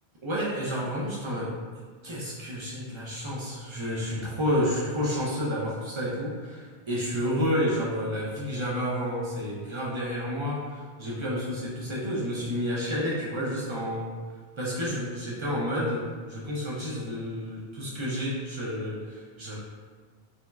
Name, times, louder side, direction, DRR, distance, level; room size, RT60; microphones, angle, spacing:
voice 1, 0.2-1.6 2.0-14.1 14.6-19.6, equal, 50° right, -6 dB, 0.3 m, -30 dB
2.9 x 2.7 x 2.2 m, 1.5 s
omnidirectional pair, 1.2 m